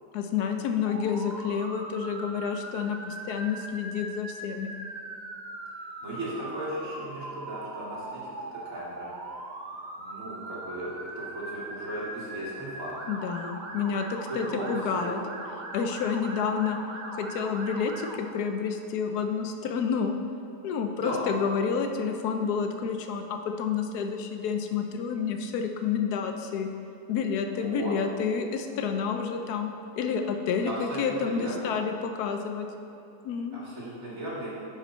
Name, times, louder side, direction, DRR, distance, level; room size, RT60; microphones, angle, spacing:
voice 1, 0.1-4.7 13.1-15.2 15.7-16.8 17.1-20.1 20.6-26.7 27.1-32.7 33.2-33.6, left 6 dB, 75° left, 5 dB, 1.1 m, -29 dB
Motor vehicle (road) / Siren, 0.8-18.2, right 2 dB, 80° right, 0.4 m, -40 dB
voice 2, 6.0-9.4 10.0-12.9 14.3-15.1 21.0-21.3 27.6-27.9 30.6-31.7 33.5-34.5, right 1 dB, 55° right, -7 dB, 2.4 m, -36 dB
9.9 x 5.1 x 4.3 m, 2.9 s
omnidirectional pair, 1.8 m